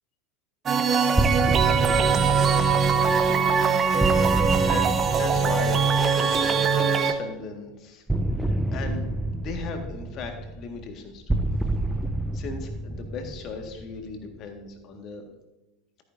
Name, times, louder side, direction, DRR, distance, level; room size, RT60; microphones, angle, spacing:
sound 1, 0.7-7.1, right 6 dB, 30° right, 0.9 m, -22 dB
sound 2, 1.2-6.9 8.1-14.4, right 1 dB, 5° right, 0.6 m, -29 dB
voice 1, 2.0-3.7 4.3-8.0 8.3-9.0 9.4-11.4 12.3-15.2, left 4 dB, 40° left, 4 dB, 1.7 m, -38 dB
13.5 x 9.4 x 2.7 m, 1.0 s
figure-of-eight pair, 80°, 0 cm